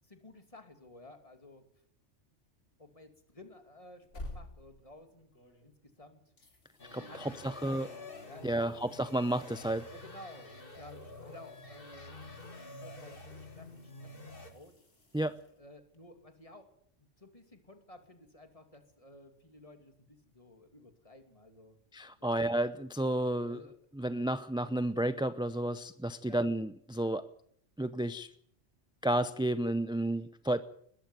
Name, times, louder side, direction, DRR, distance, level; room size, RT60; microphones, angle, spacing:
voice 1, 0.0-1.6 2.8-5.3 5.6-5.7 6.0-6.2 7.1-8.7 9.9-12.2 12.8-14.7 15.6-16.7 17.2-21.8 23.5-23.7 26.3-26.4, left 1 dB, 30° left, 7 dB, 2.8 m, -54 dB
sound 1, 3.8-6.0 6.4-16.0 18.7-18.8, left 1 dB, 70° left, 3.5 m, -54 dB
sound 2, 6.8-14.5, left 2 dB, 45° left, 2.6 m, -48 dB
voice 2, 6.9-7.9 8.4-9.9 15.1-15.4 21.9-23.6 24.0-27.3 27.8-28.3 29.0-30.6, right 1 dB, 5° right, 13 dB, 0.5 m, -31 dB
21.0 x 14.0 x 9.4 m, 0.66 s
omnidirectional pair, 1.2 m